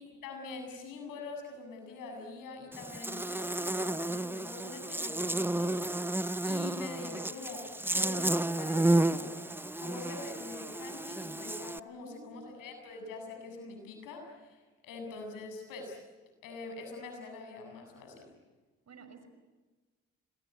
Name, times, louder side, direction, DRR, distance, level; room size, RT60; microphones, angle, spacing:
voice 1, 0.2-9.4 9.8-16.0 16.4-18.3, left 3 dB, 85° left, 4 dB, 7.8 m, -44 dB
Buzz, 2.7-11.8, right 1 dB, 5° right, 0.7 m, -32 dB
voice 2, 11.9-12.7 18.9-19.3, right 3 dB, 55° right, 9 dB, 5.9 m, -53 dB
26.5 x 21.0 x 9.5 m, 1.3 s
supercardioid pair, 60°, 32 cm